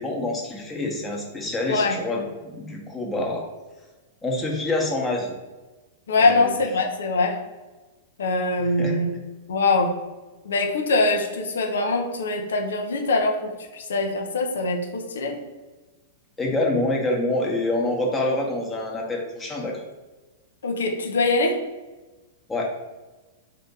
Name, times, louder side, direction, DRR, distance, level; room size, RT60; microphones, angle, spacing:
voice 1, 0.0-3.4 4.2-5.3 6.2-6.5 8.6-9.0 16.4-19.8 22.5-22.7, left 2 dB, 15° left, -1 dB, 0.9 m, -26 dB
voice 2, 6.1-7.4 8.2-9.1 9.5-9.9 10.4-15.4 20.6-21.6, left 3 dB, 80° left, 2 dB, 0.7 m, -23 dB
2.7 x 2.5 x 3.8 m, 1.2 s
hypercardioid pair, 115°, 0 cm